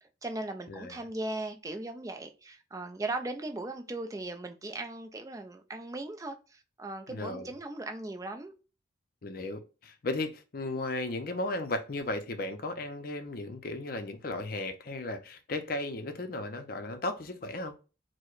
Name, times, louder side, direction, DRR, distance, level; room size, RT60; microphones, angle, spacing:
voice 1, 0.0-8.5, right 2 dB, 15° right, 0.4 m, -38 dB
voice 2, 7.1-7.5 9.2-17.7, left 2 dB, 50° left, 0.5 m, -35 dB
4.6 x 2.1 x 2.4 m
head